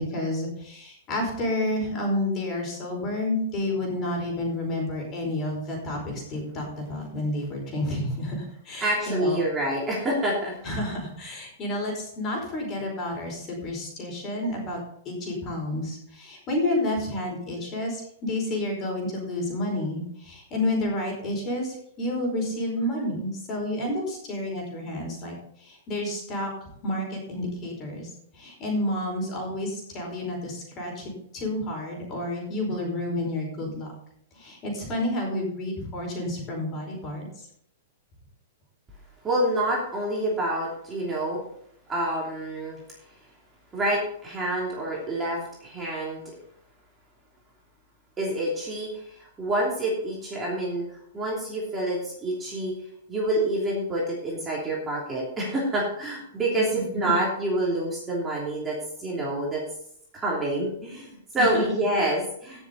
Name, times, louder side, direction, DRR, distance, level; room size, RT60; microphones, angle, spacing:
voice 1, 0.0-9.4 10.6-33.9 34.3-37.3 56.5-57.1 61.4-61.8, left 1 dB, 25° left, 0 dB, 4.9 m, -30 dB
voice 2, 8.8-10.5 39.2-41.4 41.9-42.8 43.7-46.2 48.2-50.9 51.1-52.7 53.1-59.6 60.1-62.7, right 1 dB, 15° right, -4 dB, 3.0 m, -27 dB
16.5 x 7.2 x 4.1 m, 0.69 s
hypercardioid pair, 155°, 0 cm